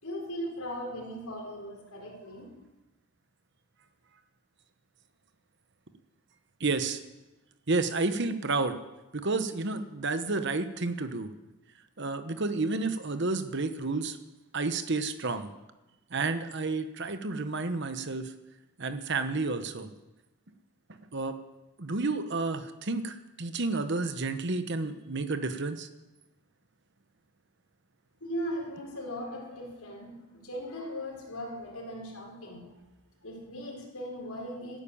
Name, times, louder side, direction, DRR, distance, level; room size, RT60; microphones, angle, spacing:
voice 1, 0.0-2.6 28.2-32.8 33.2-34.8, equal, 80° left, -1 dB, 4.8 m, -38 dB
voice 2, 6.6-7.0 7.7-8.8 9.1-11.3 12.0-14.2 14.5-15.5 16.1-18.3 18.8-19.9 21.1-21.4 21.8-25.9, right 3 dB, 50° right, 10 dB, 1.1 m, -30 dB
13.5 x 11.0 x 8.6 m, 1.0 s
head